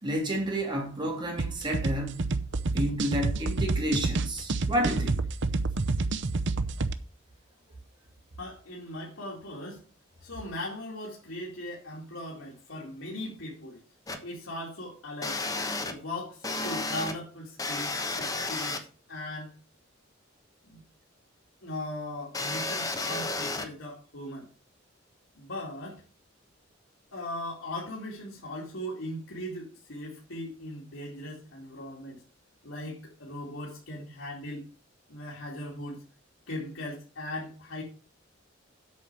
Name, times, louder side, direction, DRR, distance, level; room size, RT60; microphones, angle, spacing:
voice 1, 0.0-2.3 2.7-5.2, equal, 25° right, 3.1 m, -30 dB
sound 1, 1.4-6.9, right 3 dB, 65° right, 0.7 m, -29 dB
voice 2, 8.4-9.8 10.2-13.8 14.2-15.4 15.8-19.6 20.6-20.8 21.6-24.5 25.3-26.0 27.1-32.2 32.6-34.7 35.1-36.0 36.5-37.8, left 1 dB, 85° left, 2.6 m, -39 dB
sound 2, 14.1-14.2 15.2-15.9 16.4-17.1 17.6-18.8 22.3-23.7, left 3 dB, 20° left, 1.1 m, -32 dB
8.3 x 5.5 x 7.4 m
head